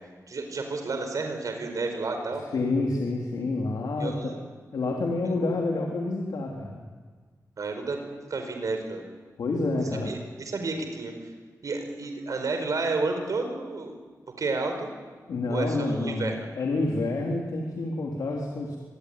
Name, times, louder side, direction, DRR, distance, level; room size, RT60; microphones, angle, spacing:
voice 1, 0.3-2.4 4.0-4.3 7.6-8.0 8.3-9.1 10.1-11.1 11.6-14.0 14.4-14.9 15.5-16.3, right 3 dB, 65° right, 5 dB, 4.9 m, -31 dB
voice 2, 2.5-4.3 4.7-6.8 9.4-10.1 15.3-18.8, left 2 dB, 80° left, 0 dB, 3.3 m, -28 dB
26.5 x 23.0 x 9.7 m, 1.5 s
wide cardioid pair, 95°, 6 cm